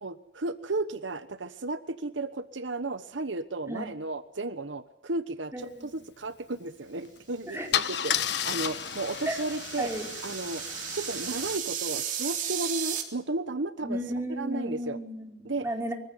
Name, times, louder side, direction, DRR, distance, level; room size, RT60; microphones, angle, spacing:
voice 1, 0.0-9.9 10.2-10.6 10.9-14.0 14.3-15.0 15.4-15.7, right 2 dB, 80° right, 11 dB, 1.2 m, -34 dB
voice 2, 5.5-6.0 7.5-7.7 9.3-9.4 9.8-10.1 13.8-15.9, equal, 15° right, 1 dB, 4.4 m, -34 dB
Car / Engine starting / Idling, 7.0-7.2 7.7-11.6, left 9 dB, 60° left, 1.3 m, -32 dB
sound 1, 7.9-13.0, right 9 dB, 45° right, 3.6 m, -35 dB
24.0 x 15.5 x 9.6 m, 0.84 s
head